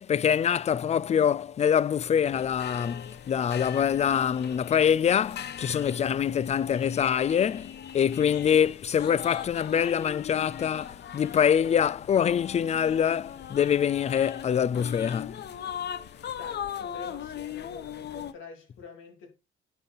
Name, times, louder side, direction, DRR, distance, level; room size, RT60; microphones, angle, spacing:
voice 1, 0.0-15.4, left 8 dB, 35° left, 0.4 m, -25 dB
sound 1, 2.2-18.3, left 9 dB, 55° left, 0.8 m, -40 dB
voice 2, 16.4-19.3, left 5 dB, 80° left, 2.9 m, -46 dB
10.5 x 5.5 x 4.1 m
cardioid pair, 85°, 20 cm